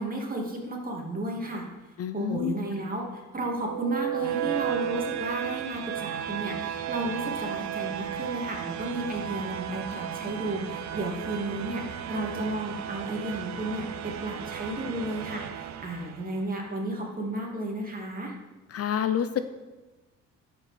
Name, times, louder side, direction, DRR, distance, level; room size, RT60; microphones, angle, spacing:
voice 1, 0.0-1.7 2.1-18.3, right 2 dB, 30° right, 0 dB, 2.5 m, -33 dB
voice 2, 2.0-2.5 18.7-19.4, left 9 dB, 50° left, 10 dB, 0.6 m, -28 dB
sound 1, 3.5-16.5, right 10 dB, 65° right, 0.7 m, -34 dB
12.0 x 5.4 x 5.1 m, 1.2 s
cardioid pair, 90°, 30 cm